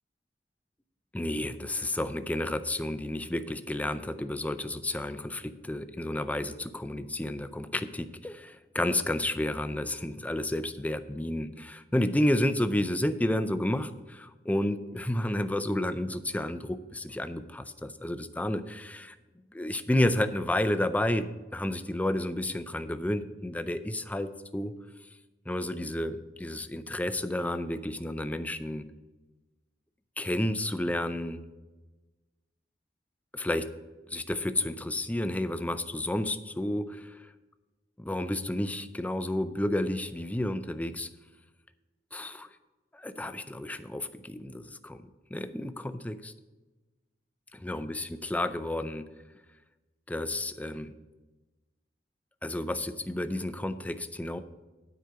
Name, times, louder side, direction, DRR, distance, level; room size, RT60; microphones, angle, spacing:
voice 1, 1.1-19.2 19.5-24.7 25.5-28.9 30.2-31.4 33.3-33.7 34.1-37.3 38.0-41.1 42.1-42.5 42.9-45.0 45.3-46.3 47.5-49.1 50.1-50.9 52.4-54.4, left 1 dB, 10° left, 11 dB, 0.4 m, -31 dB
9.3 x 4.9 x 7.9 m, 1.2 s
head